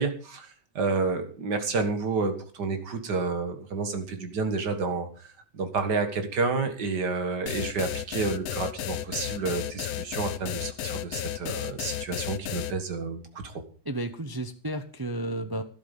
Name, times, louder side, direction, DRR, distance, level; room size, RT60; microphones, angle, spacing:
voice 1, 0.0-13.6, right 4 dB, 65° right, 8 dB, 2.2 m, -30 dB
sound 1, 7.5-12.7, left 11 dB, 65° left, 1.1 m, -33 dB
voice 2, 13.8-15.6, right 1 dB, 40° right, 8 dB, 0.3 m, -32 dB
12.0 x 12.0 x 5.3 m, 0.41 s
omnidirectional pair, 2.0 m